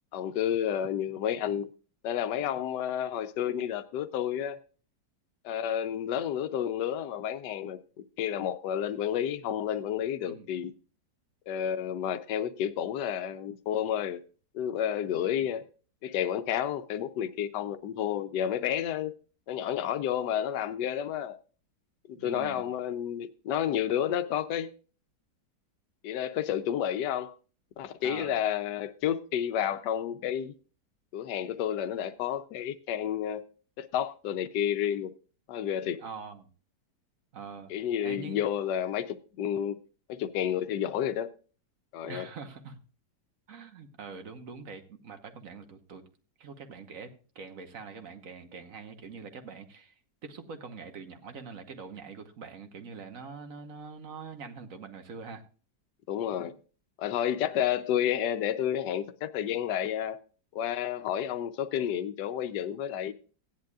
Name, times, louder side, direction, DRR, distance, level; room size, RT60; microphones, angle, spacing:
voice 1, 0.1-1.7 2.0-4.6 5.4-7.8 8.2-10.7 11.5-14.2 14.5-15.6 16.0-19.1 19.5-21.4 22.1-24.7 26.0-27.3 27.8-30.5 31.1-33.4 33.8-35.1 35.5-36.0 37.7-39.8 40.1-41.3 41.9-42.3 56.1-56.5 57.0-60.2 60.5-63.1, left 10 dB, 85° left, 1.3 m, -30 dB
voice 2, 22.1-22.6 28.0-28.3 36.0-36.5 37.3-37.7 38.0-38.4 42.1-42.8 43.5-46.0 46.4-49.9 50.2-55.4, right 5 dB, 55° right, 1.5 m, -44 dB
16.0 x 10.5 x 2.3 m
omnidirectional pair, 1.8 m